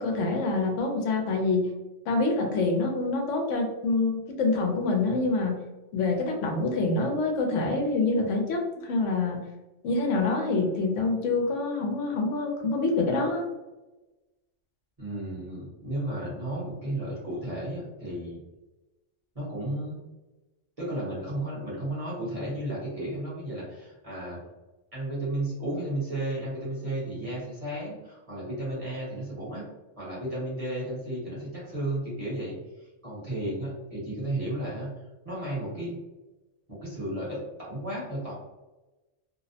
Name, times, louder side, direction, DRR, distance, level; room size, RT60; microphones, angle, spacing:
voice 1, 0.0-1.7 2.1-5.6 5.9-9.5 9.8-13.4, left 3 dB, 80° left, 2 dB, 0.9 m, -26 dB
voice 2, 15.0-18.4 19.3-20.0 20.8-24.4 24.9-29.6 30.0-34.9 35.2-36.0 36.7-38.3, right 1 dB, 35° right, -7 dB, 0.8 m, -33 dB
2.6 x 2.0 x 2.6 m, 1.1 s
omnidirectional pair, 1.3 m